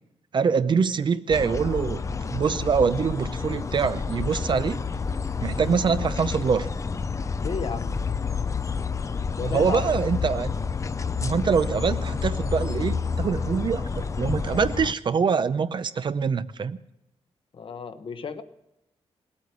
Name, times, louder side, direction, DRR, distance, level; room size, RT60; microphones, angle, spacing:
voice 1, 0.3-4.8 5.4-6.7 9.4-10.5 11.2-16.8, right 6 dB, 45° right, 13 dB, 0.6 m, -24 dB
sound 1, 1.3-14.9, left 5 dB, 30° left, 0.5 m, -29 dB
voice 2, 7.4-7.9 9.3-9.8 17.5-18.4, left 5 dB, 50° left, 9 dB, 1.0 m, -32 dB
19.0 x 8.7 x 8.0 m, 0.90 s
wide cardioid pair, 120°, 11 cm